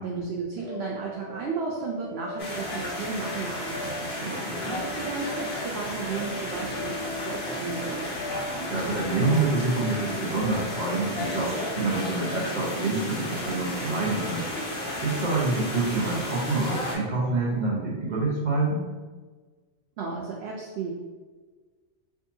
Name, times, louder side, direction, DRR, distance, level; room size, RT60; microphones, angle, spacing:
voice 1, 0.0-4.1 4.7-8.1 20.0-20.9, right 4 dB, 65° right, -1 dB, 0.8 m, -34 dB
sound 1, 0.6-12.4, left 1 dB, 20° left, 1.2 m, -39 dB
sound 2, 2.4-16.9, left 1 dB, 60° left, 1.3 m, -33 dB
voice 2, 4.2-4.8 8.7-14.4 15.0-18.9, right 3 dB, 40° right, -4 dB, 1.0 m, -27 dB
4.6 x 2.6 x 2.7 m, 1.4 s
omnidirectional pair, 1.2 m